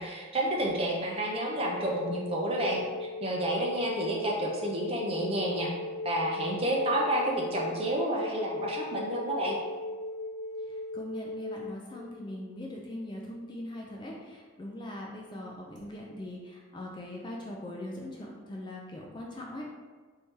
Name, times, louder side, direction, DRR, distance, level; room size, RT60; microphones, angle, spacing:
voice 1, 0.0-2.8 3.2-5.7 6.0-9.6, right 1 dB, 30° right, -2 dB, 0.6 m, -30 dB
sound 1, 1.6-14.0 15.8-15.9, left 2 dB, 55° right, 1.0 m, -39 dB
voice 2, 10.7-19.8, left 1 dB, 20° left, -2 dB, 0.3 m, -41 dB
4.3 x 2.7 x 3.6 m, 1.4 s
head